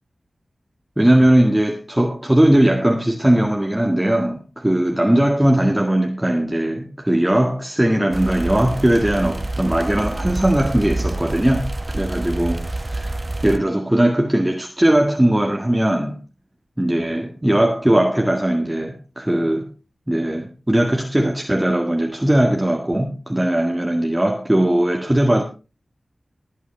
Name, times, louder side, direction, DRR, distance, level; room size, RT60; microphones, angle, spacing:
voice 1, 1.0-13.1 13.4-16.2 16.8-19.7 20.1-25.4, right 1 dB, 15° right, 1.8 m, -19 dB
sound 1, 8.1-13.6, right 2 dB, 35° right, 1.2 m, -27 dB
20.5 x 8.6 x 3.4 m
wide cardioid pair, 55°, 0 cm